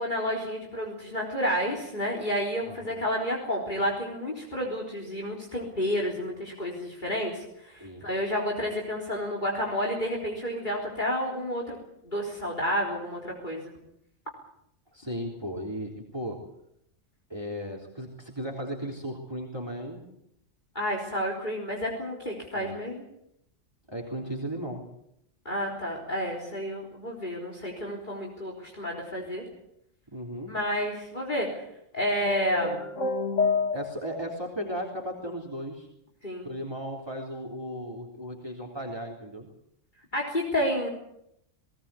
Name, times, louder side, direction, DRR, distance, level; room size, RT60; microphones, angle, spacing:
voice 1, 0.0-11.8 12.0-13.7 20.7-23.0 25.5-29.4 30.5-31.5 31.9-32.8 36.2-36.5 40.1-40.9, equal, 40° left, 0 dB, 4.1 m, -30 dB
voice 2, 2.6-3.0 7.8-8.1 14.9-16.4 17.3-20.0 22.5-22.8 23.9-24.8 30.1-30.5 33.7-35.9 36.4-39.5, equal, 20° right, 0 dB, 3.6 m, -36 dB
sound 1, 32.2-34.3, left 4 dB, 80° left, 2.4 m, -28 dB
19.5 x 19.0 x 8.5 m, 0.77 s
omnidirectional pair, 1.3 m